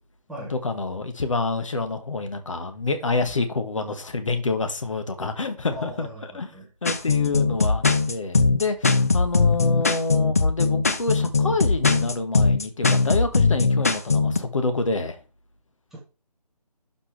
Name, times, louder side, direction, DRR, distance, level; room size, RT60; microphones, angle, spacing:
voice 1, 0.5-6.1 6.3-6.5 6.8-15.2, left 3 dB, 50° left, 1.6 m, -27 dB
voice 2, 5.7-6.7 15.9-16.0, equal, ahead, 0.9 m, -39 dB
sound 1, 6.9-14.4, left 4 dB, 25° left, 0.5 m, -20 dB
12.0 x 5.1 x 3.4 m
figure-of-eight pair, 155°, 21 cm